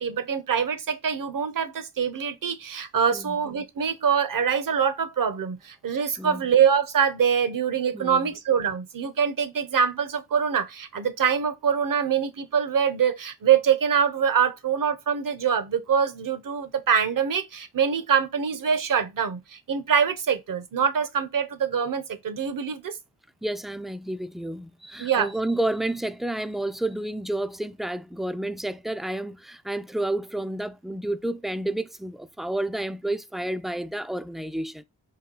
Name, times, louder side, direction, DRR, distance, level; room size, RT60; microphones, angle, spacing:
voice 1, 0.0-23.0 25.0-25.3, right 7 dB, 55° right, 0.7 m, -24 dB
voice 2, 6.2-6.5 7.9-8.4 23.4-34.8, right 1 dB, ahead, 0.3 m, -30 dB
4.3 x 2.3 x 3.7 m
cardioid pair, 50°, 40 cm